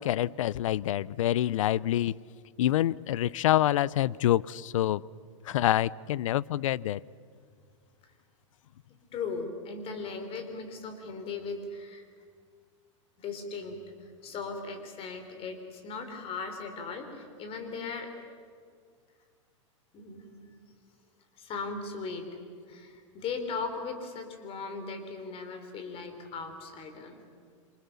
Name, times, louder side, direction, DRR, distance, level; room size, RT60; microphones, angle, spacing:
voice 1, 0.0-2.2 2.6-5.1 5.5-7.0, left 13 dB, 80° left, 0.6 m, -26 dB
voice 2, 9.1-12.1 13.2-18.1 19.9-20.6 21.4-22.3 22.7-27.2, left 4 dB, 35° left, 4.8 m, -38 dB
27.5 x 27.0 x 7.0 m
hypercardioid pair, 125°, 16 cm